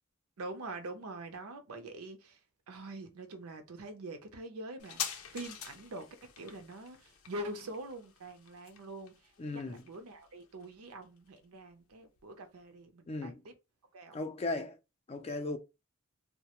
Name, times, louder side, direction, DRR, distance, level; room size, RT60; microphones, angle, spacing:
voice 1, 0.4-2.4 2.7-6.1 6.4-13.5 13.9-14.2, right 1 dB, 85° right, 0.6 m, -44 dB
sound 1, 4.8-11.9 12.2-12.3, left 8 dB, 80° left, 0.5 m, -45 dB
voice 2, 9.4-9.8 13.1-13.4 14.1-14.8 15.1-15.6, left 2 dB, 30° left, 0.4 m, -36 dB
2.3 x 2.1 x 2.9 m
head